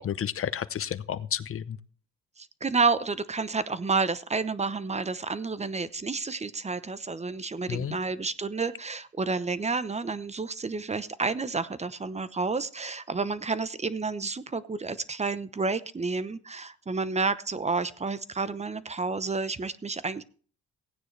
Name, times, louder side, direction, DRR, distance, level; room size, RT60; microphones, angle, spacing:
voice 1, 0.0-1.8 7.7-8.0, left 9 dB, 45° left, 15 dB, 0.8 m, -31 dB
voice 2, 2.4-20.2, right 4 dB, 20° right, 15 dB, 0.8 m, -30 dB
16.0 x 9.4 x 3.3 m, 0.41 s
cardioid pair, 90°, 30 cm